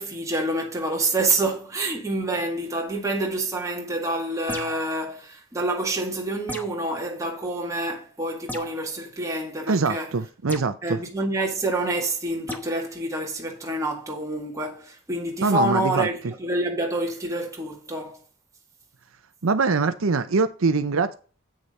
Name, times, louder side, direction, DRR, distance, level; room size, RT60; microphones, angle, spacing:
voice 1, 0.0-10.1 10.8-18.2, right 2 dB, 15° right, 1.9 m, -27 dB
sound 1, 4.5-4.9 6.5-6.9 8.5-8.8 10.5-10.7 12.5-12.7, equal, 10° left, 1.0 m, -35 dB
voice 2, 9.7-11.0 15.4-16.1 19.4-21.1, right 4 dB, 70° right, 0.7 m, -23 dB
8.6 x 6.5 x 4.2 m
head